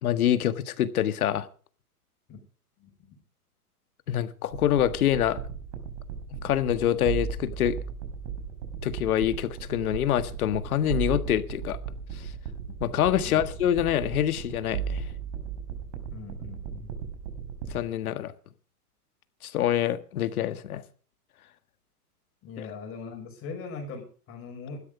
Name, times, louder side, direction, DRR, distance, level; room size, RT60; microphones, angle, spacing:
voice 1, 0.0-1.5 4.1-5.4 6.4-7.8 8.8-11.8 12.8-15.0 17.7-18.3 19.4-20.8, left 11 dB, 65° left, 1.7 m, -26 dB
voice 2, 2.8-3.2 13.2-13.4 16.1-17.0 22.4-24.8, left 4 dB, 30° left, 5.4 m, -41 dB
sound 1, 4.5-17.8, right 7 dB, 55° right, 4.7 m, -36 dB
16.5 x 13.0 x 5.0 m
hypercardioid pair, 135°, 46 cm